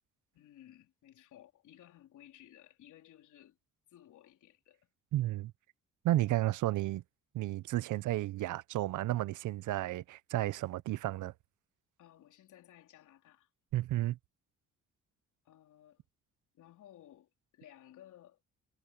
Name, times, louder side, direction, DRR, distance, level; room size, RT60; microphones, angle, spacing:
voice 1, 0.3-3.6 3.9-4.9 12.0-13.5 15.4-16.0 16.5-18.4, left 12 dB, 75° left, 4.0 m, -58 dB
voice 2, 5.1-5.5 6.0-7.0 7.3-11.3 13.7-14.2, right 15 dB, 80° right, 0.8 m, -32 dB
cardioid pair, 90°, 30 cm